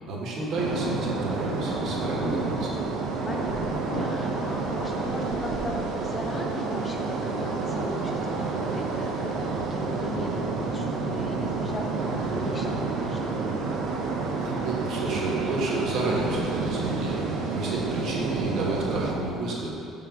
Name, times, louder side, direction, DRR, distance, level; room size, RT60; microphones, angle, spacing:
voice 1, 0.1-2.7 14.4-19.8, right 2 dB, 50° right, -3 dB, 1.1 m, -30 dB
sound 1, 0.6-19.2, right 4 dB, 65° right, 0.6 m, -29 dB
sound 2, 1.3-17.5, left 1 dB, 50° left, 0.8 m, -43 dB
voice 2, 3.2-9.3 9.7-13.5, left 2 dB, 15° left, 1 dB, 0.6 m, -38 dB
5.9 x 3.9 x 4.6 m, 2.6 s
cardioid pair, 165°, 0 cm